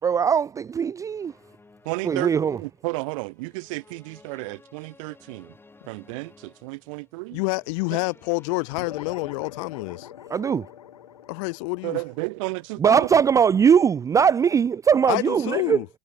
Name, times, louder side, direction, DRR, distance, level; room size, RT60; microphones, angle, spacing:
voice 1, 0.0-1.3 2.0-2.6 10.3-10.7 12.8-15.8, right 7 dB, 15° right, 0.5 m, -20 dB
sound 1, 1.0-9.0, left 3 dB, 10° left, 4.9 m, -55 dB
voice 2, 1.9-5.5 5.9-7.4 7.9-8.0 11.8-13.3, right 26 dB, 55° right, 1.7 m, -32 dB
voice 3, 7.3-10.1 11.3-12.0 15.1-15.9, left 31 dB, 55° left, 2.0 m, -28 dB
sound 2, 8.7-13.5, left 10 dB, 75° left, 3.1 m, -42 dB
hypercardioid pair, 95°, 19 cm